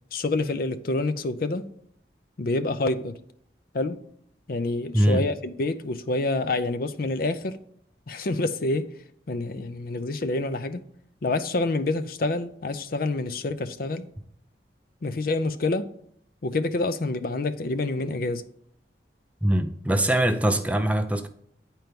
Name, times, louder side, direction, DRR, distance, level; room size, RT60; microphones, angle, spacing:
voice 1, 0.1-1.7 2.4-3.2 3.7-4.0 4.5-7.6 8.1-8.9 9.3-10.8 11.2-14.1 15.0-15.9 16.4-18.4, left 2 dB, 55° left, 0.5 m, -27 dB
voice 2, 4.9-5.3 19.4-21.3, right 1 dB, 10° right, 0.5 m, -22 dB
9.4 x 4.5 x 5.2 m
head